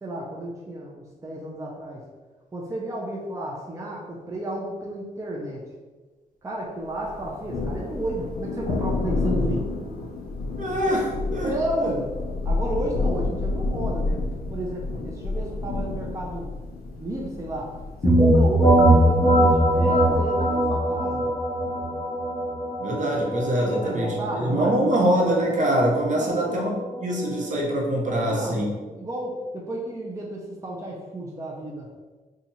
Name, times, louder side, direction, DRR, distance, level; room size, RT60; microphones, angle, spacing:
voice 1, 0.0-2.0 2.5-5.6 6.4-9.7 11.4-12.1 12.4-14.2 14.5-16.5 17.0-17.7 18.0-21.3 23.5-25.0 26.1-26.4 28.1-31.9, right 1 dB, 20° right, -3 dB, 0.6 m, -32 dB
Thunder, 7.0-20.2, left 3 dB, 75° left, 0.5 m, -30 dB
voice 2, 10.6-11.5 11.8-11.9 22.8-26.7 27.0-28.7, right 1 dB, 55° right, -2 dB, 0.9 m, -24 dB
sound 1, 18.0-27.6, right 1 dB, 35° left, 0.9 m, -21 dB
2.8 x 2.5 x 4.1 m, 1.2 s
cardioid pair, 80°, 16 cm